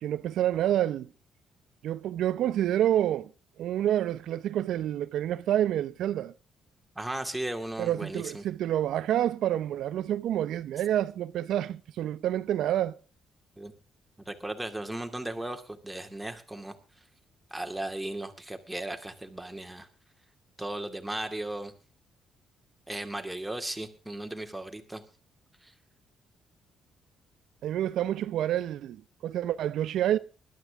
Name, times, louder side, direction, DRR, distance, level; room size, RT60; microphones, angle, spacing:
voice 1, 0.0-1.1 1.8-3.3 3.6-6.3 7.8-13.0 27.6-30.2, right 11 dB, 80° right, 0.7 m, -28 dB
voice 2, 7.0-8.5 13.6-13.7 14.3-16.8 17.5-19.9 20.6-21.7 22.9-25.0 25.6-25.7, right 1 dB, 5° right, 2.5 m, -36 dB
20.5 x 12.5 x 3.6 m
cardioid pair, 90°, 0 cm